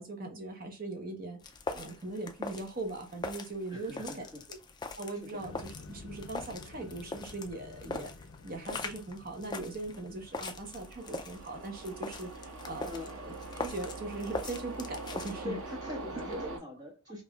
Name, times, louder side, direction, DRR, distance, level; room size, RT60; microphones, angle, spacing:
voice 1, 0.0-1.4 1.7-4.6 5.0-15.6 15.9-16.0 16.3-16.5, right 2 dB, 45° right, 4 dB, 0.9 m, -40 dB
sound 1, 1.4-15.3, left 3 dB, 20° left, 0.4 m, -42 dB
voice 2, 3.7-4.4 5.2-5.4 12.8-13.2 15.4-17.2, left 2 dB, 20° right, -1 dB, 1.3 m, -43 dB
sound 2, 5.4-11.2, left 3 dB, 75° left, 0.5 m, -51 dB
sound 3, 10.5-16.6, right 3 dB, 90° right, 0.9 m, -43 dB
5.2 x 2.6 x 2.3 m, 0.32 s
head